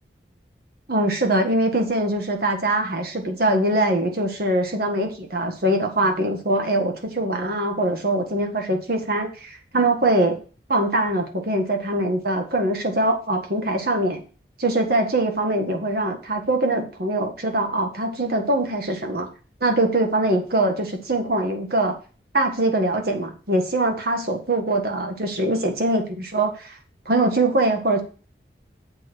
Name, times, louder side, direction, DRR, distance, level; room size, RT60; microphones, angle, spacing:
voice 1, 0.9-10.4 10.7-14.2 14.6-19.3 19.6-21.9 22.3-26.8 27.0-28.0, right 1 dB, 60° right, 4 dB, 1.7 m, -22 dB
7.6 x 4.5 x 6.2 m, 0.37 s
head